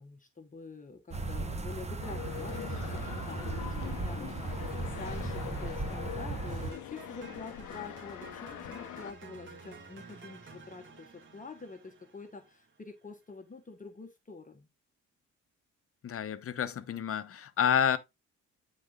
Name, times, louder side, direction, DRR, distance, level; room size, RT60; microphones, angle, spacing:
voice 1, 0.0-14.7, left 4 dB, 25° left, 1.3 m, -47 dB
sound 1, 1.1-6.7, right 3 dB, 20° right, 1.2 m, -36 dB
sound 2, 2.0-9.1, left 14 dB, 80° left, 0.8 m, -43 dB
sound 3, 6.7-12.8, right 3 dB, 40° right, 2.4 m, -51 dB
voice 2, 16.0-18.0, left 8 dB, 50° left, 1.0 m, -29 dB
9.5 x 4.2 x 3.8 m
cardioid pair, 90°, 30 cm